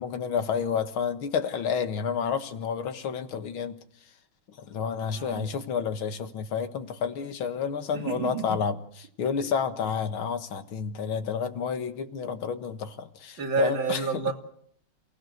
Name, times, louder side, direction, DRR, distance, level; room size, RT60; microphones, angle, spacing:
voice 1, 0.0-3.8 4.6-8.8 9.2-14.0, left 6 dB, 85° left, 2.3 m, -30 dB
voice 2, 5.1-5.5 7.9-8.6 9.2-9.5 13.4-14.3, right 5 dB, 70° right, 3.5 m, -30 dB
28.0 x 16.5 x 8.0 m
omnidirectional pair, 2.2 m